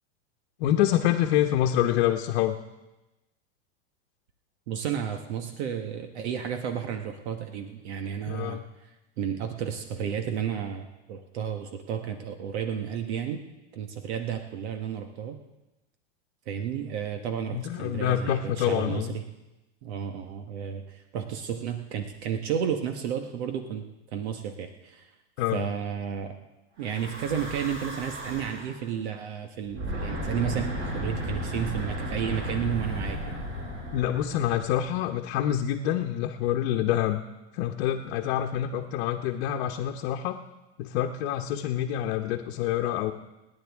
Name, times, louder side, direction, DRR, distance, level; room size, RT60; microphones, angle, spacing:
voice 1, 0.6-2.6 8.3-8.6 17.5-19.1 25.4-25.6 33.9-37.2 37.5-40.4 40.8-43.1, left 11 dB, 60° left, 2 dB, 1.0 m, -26 dB
voice 2, 4.7-8.6 9.2-13.4 13.7-15.4 16.5-19.2 19.8-23.8 24.1-25.1 25.5-26.3 26.8-33.3, right 8 dB, 75° right, 6 dB, 1.4 m, -32 dB
Breathing / Wind, 26.8-28.8 29.6-35.0, equal, 35° right, 6.0 m, -34 dB
28.5 x 10.5 x 3.6 m, 1.0 s
supercardioid pair, 135°, 34 cm